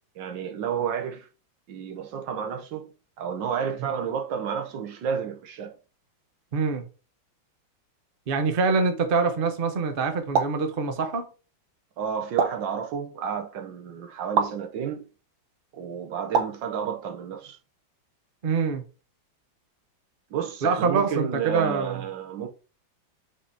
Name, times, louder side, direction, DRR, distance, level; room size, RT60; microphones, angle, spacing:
voice 1, 0.1-1.3 1.7-2.9 3.2-5.8 12.0-15.1 15.7-17.6 20.3-22.5, right 7 dB, 75° right, 1.6 m, -31 dB
voice 2, 6.5-6.8 8.3-11.3 18.4-18.8 20.6-22.0, right 4 dB, 40° right, 0.9 m, -25 dB
sound 1, 10.3-10.6 12.4-12.7 14.4-14.6 16.3-16.6, right 6 dB, 90° right, 1.7 m, -24 dB
5.1 x 4.9 x 4.4 m
omnidirectional pair, 2.0 m